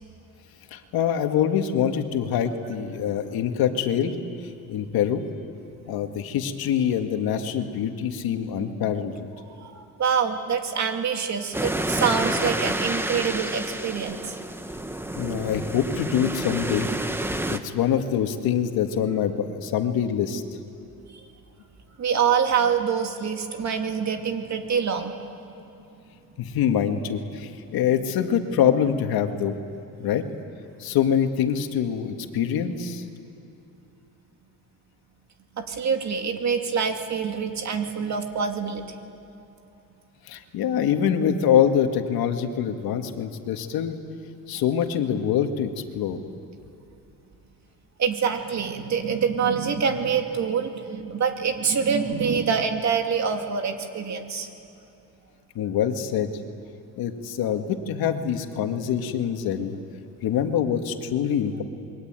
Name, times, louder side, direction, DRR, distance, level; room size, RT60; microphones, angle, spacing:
voice 1, 0.7-4.2 4.4-5.2 5.9-9.3 15.1-16.9 17.5-20.4 26.4-29.5 30.0-30.2 30.8-33.0 40.3-44.0 44.5-46.2 55.6-56.3 57.0-59.8 60.2-61.6, left 9 dB, 85° left, 6 dB, 1.9 m, -25 dB
voice 2, 9.6-14.4 22.0-25.2 35.6-39.0 48.0-54.5, right 6 dB, 50° right, 4 dB, 2.5 m, -25 dB
sound 1, 11.5-17.6, right 1 dB, 5° right, 1.1 m, -29 dB
28.5 x 23.0 x 9.0 m, 2.8 s
cardioid pair, 135°, 35 cm